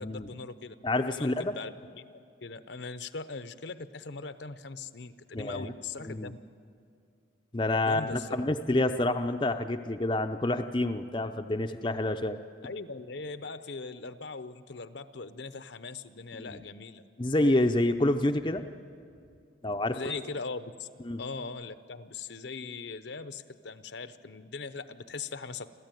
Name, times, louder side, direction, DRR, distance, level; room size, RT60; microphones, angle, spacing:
voice 1, 0.0-0.7 1.1-6.4 7.8-8.7 12.6-17.0 19.9-25.7, left 4 dB, 65° left, 11 dB, 0.8 m, -40 dB
voice 2, 0.8-1.5 5.3-5.7 6.0-6.3 7.5-12.4 16.4-16.6 17.2-18.7 19.6-20.0 21.1-21.2, left 1 dB, 25° left, 5 dB, 0.6 m, -28 dB
28.5 x 13.5 x 9.2 m, 2.3 s
head